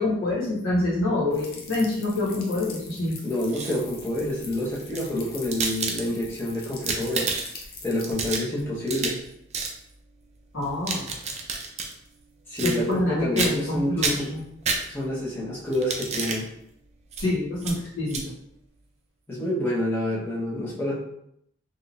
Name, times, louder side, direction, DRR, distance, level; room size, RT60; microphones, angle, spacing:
voice 1, 0.0-3.2 10.5-11.0 12.6-14.4 17.2-18.3, left 2 dB, 80° left, -7 dB, 1.3 m, -26 dB
sound 1, 1.3-8.1, left 4 dB, 50° left, 0.6 m, -44 dB
voice 2, 3.2-7.3 7.8-9.2 12.5-14.3 14.9-16.5 19.3-21.0, left 1 dB, 10° left, -7 dB, 0.9 m, -28 dB
sound 2, 3.3-4.0 4.7-6.4 6.7-7.6 8.0-9.3 9.5-9.8 10.6-11.9 12.6-13.1 13.4-13.7 14.0-15.2 15.7-16.4 17.1-17.2 17.6-17.7 18.1-18.2, right 4 dB, 35° right, 0.4 m, -30 dB
3.6 x 2.6 x 2.4 m, 0.75 s
head